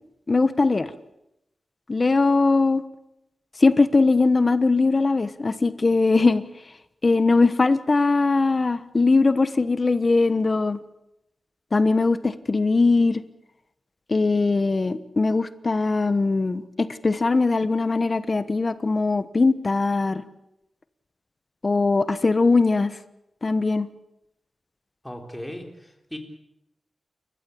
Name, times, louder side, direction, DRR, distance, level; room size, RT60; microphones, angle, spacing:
voice 1, 0.3-0.9 1.9-2.8 3.6-6.4 7.0-10.8 11.7-13.2 14.1-20.2 21.6-22.9 23.4-23.9, left 3 dB, 35° left, 13 dB, 1.1 m, -20 dB
voice 2, 25.0-26.2, left 1 dB, 5° left, 3 dB, 4.0 m, -37 dB
29.0 x 14.5 x 8.6 m, 0.85 s
wide cardioid pair, 110°, 0 cm